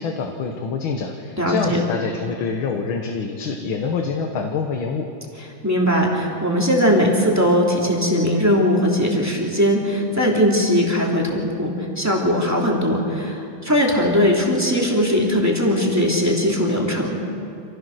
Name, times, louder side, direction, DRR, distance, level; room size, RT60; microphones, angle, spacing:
voice 1, 0.0-5.1, left 5 dB, 75° left, 4 dB, 2.0 m, -26 dB
voice 2, 1.4-1.8 5.4-17.2, equal, 5° right, -3 dB, 2.9 m, -19 dB
27.5 x 16.0 x 6.5 m, 2.5 s
omnidirectional pair, 2.3 m